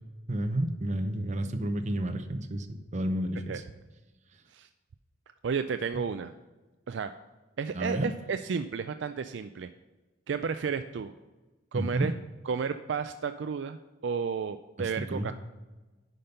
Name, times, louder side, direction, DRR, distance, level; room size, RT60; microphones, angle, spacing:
voice 1, 0.3-3.6 7.7-8.1 11.7-12.1 14.8-15.3, right 1 dB, 40° right, 7 dB, 0.8 m, -31 dB
voice 2, 5.4-6.3 6.9-7.1 7.6-9.7 10.3-11.1 11.7-12.1 12.5-15.3, right 6 dB, 65° right, 9 dB, 0.4 m, -32 dB
10.0 x 5.3 x 5.4 m, 1.2 s
head